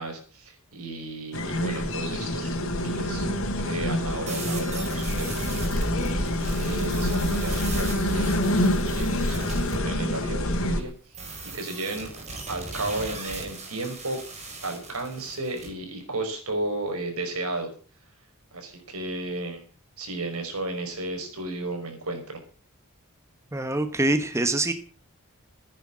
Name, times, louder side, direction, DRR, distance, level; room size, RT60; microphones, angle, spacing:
voice 1, 0.0-3.3 3.7-8.3 8.6-10.9 11.5-12.1 12.5-14.2 14.6-17.7 18.5-19.6 20.0-22.4, right 2 dB, 75° right, 5 dB, 5.3 m, -34 dB
sound 1, 1.3-10.8, left 1 dB, 65° left, 3.2 m, -26 dB
sound 2, 4.3-9.8 11.1-15.7, right 3 dB, 30° right, 4.9 m, -38 dB
voice 2, 23.5-24.7, right 2 dB, 15° right, 9 dB, 1.1 m, -24 dB
16.0 x 10.0 x 7.3 m, 0.40 s
head